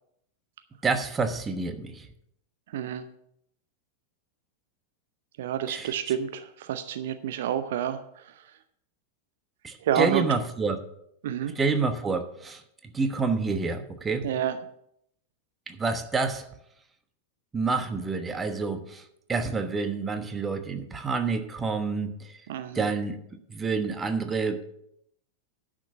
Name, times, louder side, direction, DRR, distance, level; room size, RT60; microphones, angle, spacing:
voice 1, 0.8-2.1 5.7-5.9 9.6-10.8 11.6-12.6 12.9-14.3 15.7-16.4 17.5-19.0 19.3-22.4 22.7-24.6, right 4 dB, 15° right, 8 dB, 1.1 m, -28 dB
voice 2, 2.7-3.0 5.4-8.4 9.8-10.3 11.2-11.5 14.2-14.6 22.5-22.9, right 9 dB, 55° right, 10 dB, 0.7 m, -29 dB
10.5 x 6.3 x 6.7 m, 0.74 s
figure-of-eight pair, 90°, 0 cm